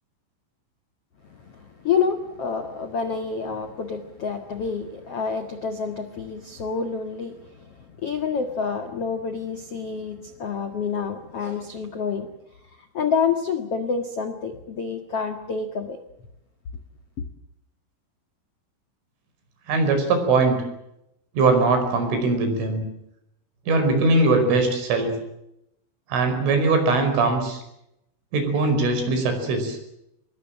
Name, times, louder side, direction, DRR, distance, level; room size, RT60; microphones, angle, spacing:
voice 1, 1.2-12.3 12.8-16.0, left 5 dB, 65° left, 7 dB, 1.5 m, -28 dB
voice 2, 19.7-20.6 21.4-22.8 23.7-25.2 26.1-27.6 28.3-29.8, right 3 dB, 70° right, 7 dB, 7.6 m, -21 dB
26.0 x 22.0 x 7.7 m, 0.83 s
omnidirectional pair, 5.8 m